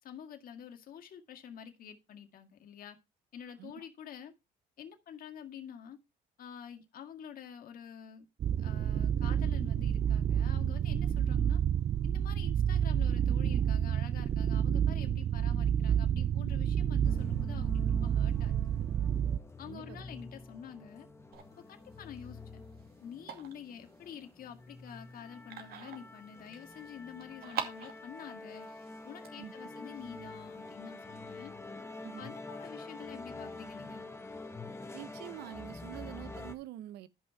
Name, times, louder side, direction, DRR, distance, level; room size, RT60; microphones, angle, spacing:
voice 1, 0.0-3.0 3.3-4.3 4.8-6.0 6.4-8.3 8.6-11.6 12.0-18.6 19.6-21.1 21.6-22.6 23.0-28.7 29.0-31.5 32.2-34.1, left 8 dB, 60° left, 1.9 m, -48 dB
sound 1, 8.4-19.4, right 9 dB, 40° right, 0.4 m, -29 dB
sound 2, 17.0-36.5, left 2 dB, 15° left, 1.6 m, -47 dB
voice 2, 19.6-20.0 29.4-29.5 32.0-32.3 34.9-37.1, right 13 dB, 80° right, 0.8 m, -46 dB
sound 3, 21.3-30.7, right 8 dB, 65° right, 2.4 m, -47 dB
12.5 x 5.5 x 4.5 m
cardioid pair, 110°, 17 cm